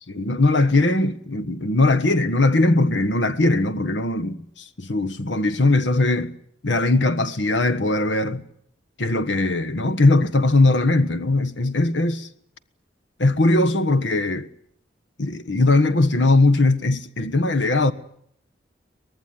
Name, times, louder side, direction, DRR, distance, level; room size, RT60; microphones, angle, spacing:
voice 1, 0.1-6.3 6.6-8.5 9.0-12.3 13.2-14.5 15.2-17.9, left 2 dB, 85° left, 1.4 m, -20 dB
24.0 x 19.0 x 9.7 m
head